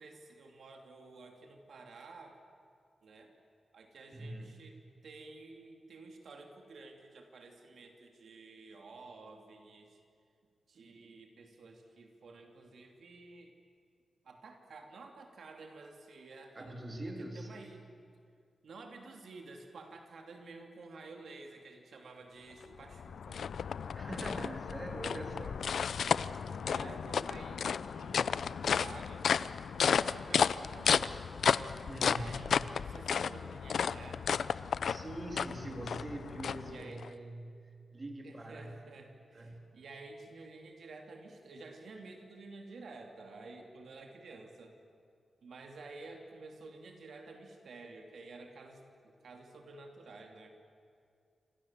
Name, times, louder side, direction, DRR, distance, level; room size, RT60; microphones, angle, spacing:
voice 1, 0.0-2.4 3.0-3.4 3.7-10.0 10.7-13.5 14.2-16.8 17.2-17.9 18.6-23.4 26.7-29.4 29.8-31.2 32.0-34.5 36.6-37.0 38.2-44.7 45.4-50.6, right 3 dB, 70° right, 3 dB, 2.9 m, -51 dB
voice 2, 4.1-4.6 16.5-17.5 23.9-25.8 26.5-27.0 31.8-32.3 34.8-38.7 39.3-39.7, right 1 dB, 25° right, 2 dB, 3.0 m, -43 dB
sound 1, 22.6-37.1, left 7 dB, 75° left, 0.6 m, -33 dB
28.5 x 26.5 x 7.5 m, 2.3 s
wide cardioid pair, 155°, 0 cm